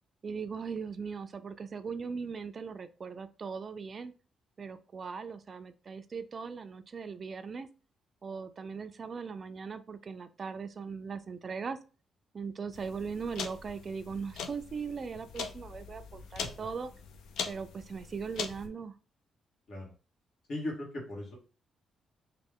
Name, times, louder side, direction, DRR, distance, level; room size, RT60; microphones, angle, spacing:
voice 1, 0.2-4.1 4.6-7.7 8.2-11.8 12.3-16.9 17.5-18.9, right 5 dB, 45° right, 11 dB, 0.3 m, -39 dB
sound 1, 12.7-18.7, left 6 dB, 85° left, 0.4 m, -42 dB
voice 2, 20.5-21.3, left 1 dB, 65° left, -1 dB, 1.4 m, -37 dB
3.1 x 2.2 x 3.6 m, 0.36 s
cardioid pair, 85°, 0 cm